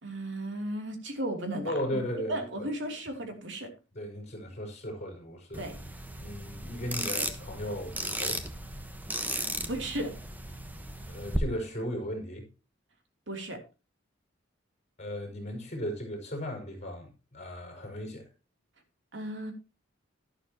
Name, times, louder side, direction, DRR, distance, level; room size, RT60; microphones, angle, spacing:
voice 1, 0.0-2.0 2.3-3.7 5.6-5.8 9.3-10.1 13.3-13.6 19.1-19.5, right 1 dB, 65° right, 3.1 m, -35 dB
voice 2, 1.6-2.7 3.9-5.6 6.2-8.4 11.1-12.5 15.0-18.3, equal, 35° left, 5.8 m, -36 dB
sound 1, 5.5-11.4, right 1 dB, 10° right, 1.2 m, -36 dB
12.0 x 11.5 x 2.9 m
head